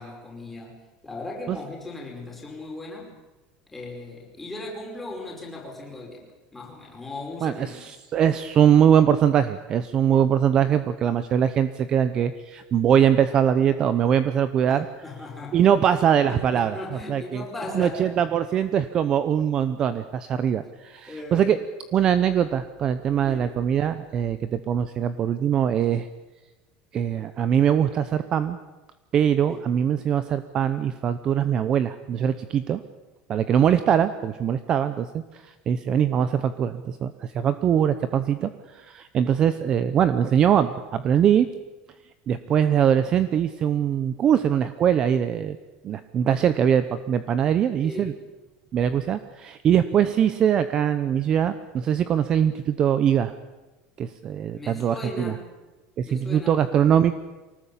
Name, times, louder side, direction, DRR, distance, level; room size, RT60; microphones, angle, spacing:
voice 1, 0.0-3.1 3.7-6.3 6.5-7.8 14.7-15.6 16.2-18.1 21.1-21.5 23.2-23.6 29.5-29.7 47.8-48.1 54.5-55.5 56.0-56.6, left 2 dB, 5° left, -2 dB, 5.1 m, -37 dB
voice 2, 7.4-14.9 15.5-17.4 17.7-21.6 21.9-26.1 26.9-28.6 29.1-32.8 33.3-41.5 42.3-45.6 45.8-48.1 48.7-53.3 54.0-55.3 56.0-57.1, right 9 dB, 30° right, 12 dB, 0.8 m, -22 dB
24.0 x 19.0 x 8.5 m, 1.1 s
cardioid pair, 175°, 3 cm